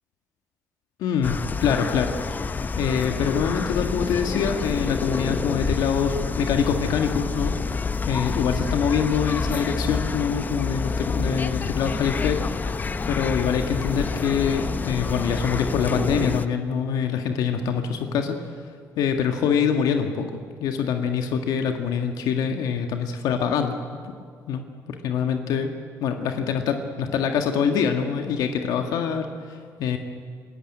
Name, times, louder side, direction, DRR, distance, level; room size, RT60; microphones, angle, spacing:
voice 1, 1.0-2.1 2.8-7.5 8.1-12.7 13.1-18.4 19.0-20.3 20.6-23.8 24.1-24.2 24.5-24.6 25.0-25.7 26.0-30.0, left 7 dB, 80° left, 5 dB, 1.6 m, -25 dB
sound 1, 1.2-16.5, left 4 dB, 30° left, 0.8 m, -28 dB
26.0 x 14.5 x 9.7 m, 2.1 s
cardioid pair, 115°, 6 cm